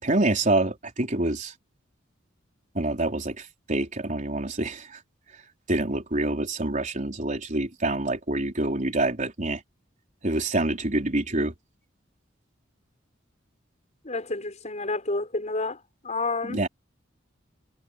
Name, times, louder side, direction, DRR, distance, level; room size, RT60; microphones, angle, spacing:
voice 1, 0.0-1.5 2.7-5.0 5.7-9.6 10.2-11.5 16.4-16.7, right 2 dB, 40° right, 4.2 m, -26 dB
voice 2, 14.0-15.8 16.0-16.6, left 3 dB, 35° left, 6.5 m, -29 dB
head